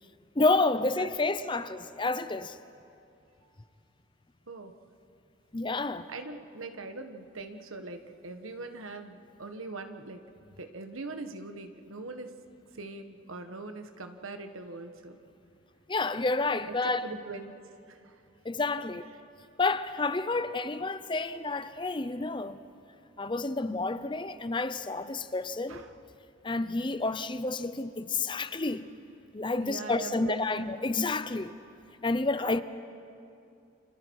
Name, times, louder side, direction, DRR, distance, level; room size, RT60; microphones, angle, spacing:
voice 1, 0.4-2.6 5.5-6.1 15.9-17.0 18.4-19.1 19.6-22.6 23.2-25.8 26.4-28.9 29.3-31.5 32.0-32.6, left 3 dB, 25° left, 0.6 m, -29 dB
voice 2, 6.1-10.2 10.6-12.3 12.7-15.2 16.7-17.5 17.9-18.2 21.3-21.4 25.7-25.9 28.1-28.2 29.6-30.7 32.3-32.4, right 3 dB, 85° right, 1.5 m, -42 dB
30.0 x 27.0 x 4.7 m
head